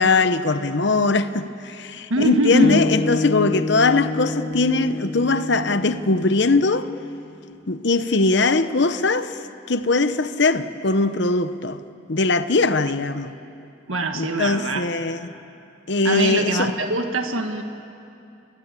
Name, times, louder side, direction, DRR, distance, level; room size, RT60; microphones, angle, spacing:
voice 1, 0.0-6.9 7.7-11.8 12.1-13.3 14.1-15.3 15.9-16.7, left 3 dB, 55° left, 0.9 m, -21 dB
voice 2, 2.1-2.8 13.9-14.8 16.0-17.6, right 1 dB, 80° right, 1.6 m, -22 dB
sound 1, 2.6-7.0, left 3 dB, 25° left, 1.1 m, -28 dB
29.0 x 23.0 x 8.3 m
head